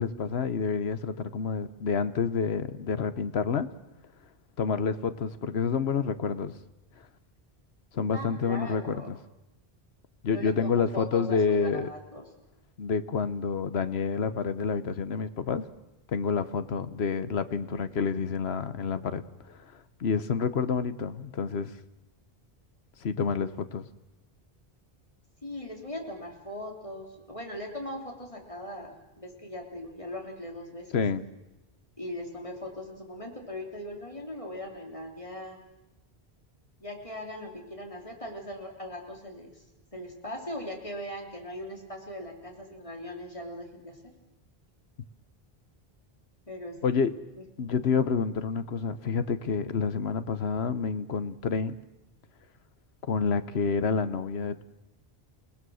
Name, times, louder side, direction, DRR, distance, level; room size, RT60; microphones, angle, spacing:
voice 1, 0.0-3.7 4.6-6.5 7.9-9.2 10.2-11.9 12.8-15.7 16.1-19.6 20.0-21.7 23.0-23.8 30.9-31.2 46.8-47.1 47.6-51.7 53.1-54.6, left 5 dB, 80° left, 13 dB, 1.2 m, -28 dB
voice 2, 8.1-9.1 10.3-12.2 25.4-31.0 32.0-35.6 36.8-39.6 39.9-44.1 46.5-46.8 47.4-47.5, left 1 dB, 30° left, 1 dB, 3.4 m, -40 dB
29.0 x 18.5 x 6.4 m, 0.97 s
omnidirectional pair, 1.1 m